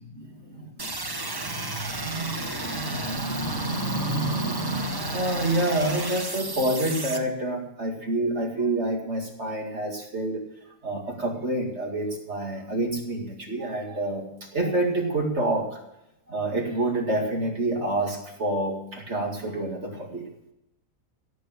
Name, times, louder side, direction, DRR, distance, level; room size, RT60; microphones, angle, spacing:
voice 1, 0.1-0.6 1.0-10.4 10.8-15.8 16.3-20.3, right 1 dB, 45° right, 1 dB, 2.4 m, -28 dB
sound 1, 0.8-7.2, right 2 dB, 15° right, 0.9 m, -33 dB
16.0 x 7.7 x 7.5 m, 0.84 s
omnidirectional pair, 1.6 m